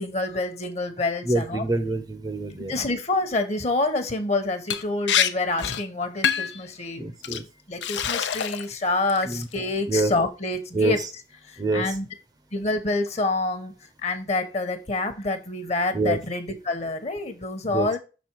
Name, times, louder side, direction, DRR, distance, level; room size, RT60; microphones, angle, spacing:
voice 1, 0.0-1.6 2.7-7.0 7.7-11.0 11.7-12.1 12.5-13.7 14.0-18.0, left 2 dB, 40° left, 1.0 m, -27 dB
voice 2, 1.3-2.7 7.0-7.4 9.3-9.4 9.9-10.1 10.7-11.0 11.6-11.8 15.9-16.2 17.7-18.0, right 2 dB, 25° right, 0.7 m, -25 dB
Liquid, 4.7-4.8 5.1-5.3 5.6-5.8 6.2-6.6 7.2-7.4 7.8-8.7 9.1-9.5, left 8 dB, 90° left, 0.6 m, -25 dB
6.3 x 4.2 x 4.6 m
head